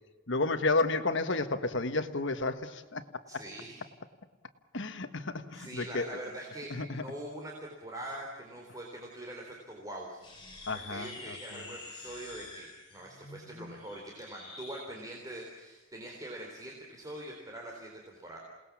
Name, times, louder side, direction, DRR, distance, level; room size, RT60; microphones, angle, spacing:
voice 1, 0.3-3.0 3.3-3.4 4.7-6.1 6.7-7.0 10.7-11.1 11.5-11.6, left 3 dB, 60° left, 9 dB, 1.5 m, -31 dB
voice 2, 3.3-3.8 5.5-10.3 10.7-18.4, right 1 dB, 15° right, -1 dB, 3.7 m, -43 dB
sound 1, 10.2-14.9, left 2 dB, 25° left, 7.4 m, -48 dB
28.0 x 19.5 x 7.3 m, 1.3 s
head